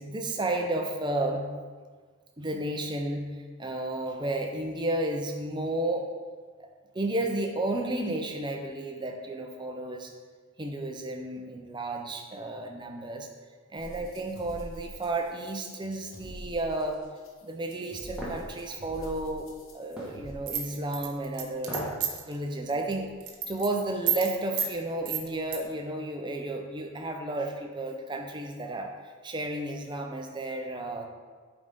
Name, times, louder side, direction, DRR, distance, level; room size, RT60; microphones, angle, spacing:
voice 1, 0.0-1.5 2.4-3.3 3.6-6.1 6.6-6.7 6.9-10.1 10.6-13.3 13.7-17.0 17.4-19.5 19.7-21.8 22.2-23.1 23.5-28.9 29.2-31.1, right 2 dB, 20° right, 3 dB, 0.5 m, -32 dB
sound 1, 13.8-20.3, equal, 65° left, 1.1 m, -45 dB
sound 2, 18.2-18.4 20.0-20.2 21.6-22.0 22.4-22.5, equal, 5° right, 1.3 m, -35 dB
sound 3, 20.5-22.3 22.7-22.9 23.2-23.7 24.1-24.3 24.6-24.7 25.1-25.6, right 8 dB, 75° right, 0.9 m, -30 dB
8.5 x 4.0 x 3.6 m, 1.5 s
head